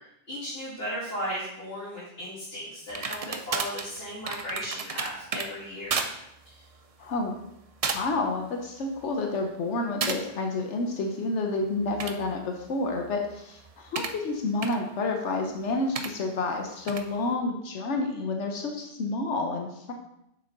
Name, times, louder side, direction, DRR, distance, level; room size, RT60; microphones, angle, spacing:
voice 1, 0.3-6.0 6.4-6.6, equal, 60° left, -11 dB, 2.6 m, -36 dB
sound 1, 2.9-5.5 5.9-6.1 6.5-6.7 7.4-7.5 7.8-8.2 8.6-9.1 10.0-10.2 11.8-14.2 14.6-14.8 16.0-16.1 16.9-17.1, right 5 dB, 45° right, 0.5 m, -33 dB
voice 2, 7.0-7.3 7.9-19.9, left 3 dB, 80° left, 2 dB, 1.1 m, -29 dB
6.7 x 5.9 x 3.9 m, 0.78 s
omnidirectional pair, 1.2 m